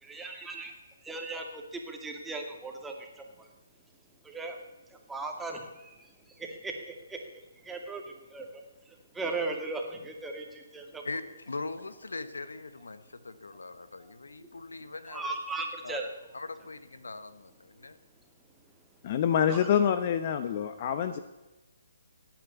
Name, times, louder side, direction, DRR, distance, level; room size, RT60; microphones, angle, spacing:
voice 1, 0.0-0.7 1.0-3.1 3.4-3.5 4.2-4.6 4.9-6.1 6.4-7.2 7.6-8.0 8.3-8.6 9.1-11.0 15.1-16.1 19.5-19.7, right 3 dB, 5° right, 2 dB, 2.4 m, -37 dB
voice 2, 11.0-15.4 15.8-16.0 16.3-18.0 19.3-19.4, left 3 dB, 85° left, 13 dB, 1.3 m, -41 dB
voice 3, 19.0-21.2, left 8 dB, 40° left, 11 dB, 0.9 m, -26 dB
17.0 x 9.2 x 8.3 m, 1.0 s
hypercardioid pair, 145°, 0 cm